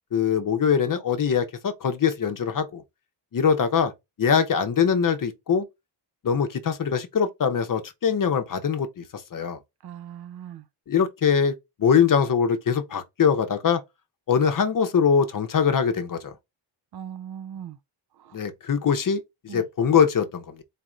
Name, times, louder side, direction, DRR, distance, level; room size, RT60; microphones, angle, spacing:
voice 1, 0.1-2.8 3.3-3.9 4.2-5.7 6.2-9.6 10.9-11.5 11.8-13.8 14.3-16.3 18.3-20.6, left 7 dB, 50° left, 0.7 m, -22 dB
voice 2, 9.8-10.7 16.9-17.8 18.2-18.4 19.5-19.6, right 9 dB, 60° right, 0.5 m, -39 dB
4.1 x 2.5 x 4.2 m
wide cardioid pair, 140°, 43 cm